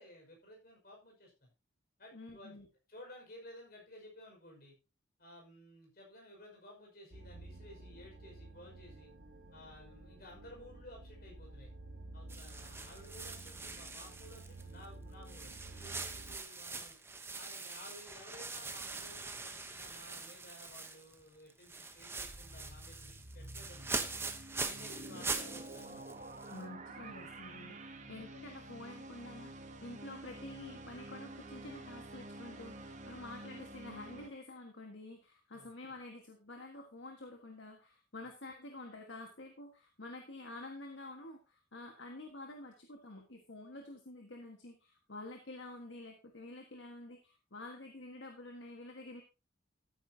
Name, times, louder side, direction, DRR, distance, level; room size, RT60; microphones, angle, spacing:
voice 1, 0.0-1.5 2.0-2.6 2.9-4.8 5.2-9.1 9.5-11.7 12.1-17.0 17.3-24.1 24.6-26.0 27.0-27.2 27.9-28.1 33.2-33.3 35.5-35.7, left 1 dB, 50° left, 0 dB, 5.6 m, -55 dB
voice 2, 2.1-2.7 26.5-49.2, left 2 dB, 70° left, 3 dB, 1.6 m, -49 dB
sound 1, 7.1-16.4, right 2 dB, 85° right, 1.4 m, -52 dB
sound 2, 12.3-14.9 15.3-21.2 21.5-26.7, right 3 dB, 10° right, 0.9 m, -43 dB
sound 3, 22.2-34.3, right 2 dB, 40° right, 1.3 m, -49 dB
13.5 x 9.3 x 2.8 m, 0.29 s
head